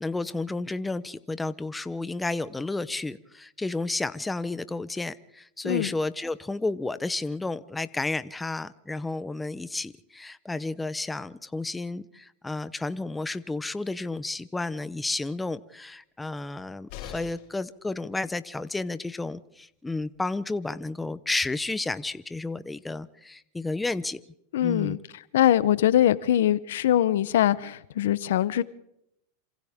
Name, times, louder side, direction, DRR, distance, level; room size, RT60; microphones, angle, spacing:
voice 1, 0.0-24.2 24.6-25.0, left 2 dB, 10° left, 14 dB, 0.8 m, -32 dB
sound 1, 16.9-17.6 19.6-19.7 20.0-20.1, left 9 dB, 55° left, 6.9 m, -42 dB
voice 2, 24.5-25.0 25.3-28.6, left 11 dB, 80° left, 17 dB, 0.8 m, -22 dB
28.0 x 26.0 x 3.6 m, 0.79 s
supercardioid pair, 125°, 0 cm